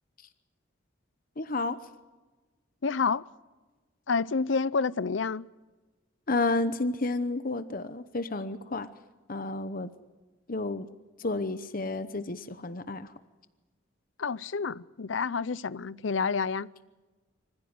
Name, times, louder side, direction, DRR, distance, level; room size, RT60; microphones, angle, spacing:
voice 1, 1.4-1.8 6.3-8.9 9.3-9.9 10.5-10.9 11.2-13.1, left 2 dB, 45° left, 0.9 m, -31 dB
voice 2, 2.8-3.2 4.1-5.5 14.2-16.7, left 5 dB, 70° left, 0.6 m, -29 dB
25.5 x 15.0 x 9.6 m
head